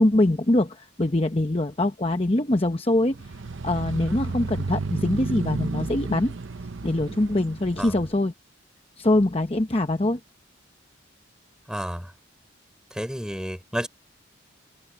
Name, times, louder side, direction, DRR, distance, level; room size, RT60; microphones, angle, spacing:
voice 1, 0.0-3.2 3.6-6.3 6.8-8.3 9.0-10.2, left 1 dB, 25° left, 0.9 m, -23 dB
sound 1, 3.1-8.1, right 3 dB, 65° right, 0.7 m, -32 dB
voice 2, 11.7-12.1 12.9-13.9, equal, 5° right, 4.5 m, -31 dB
head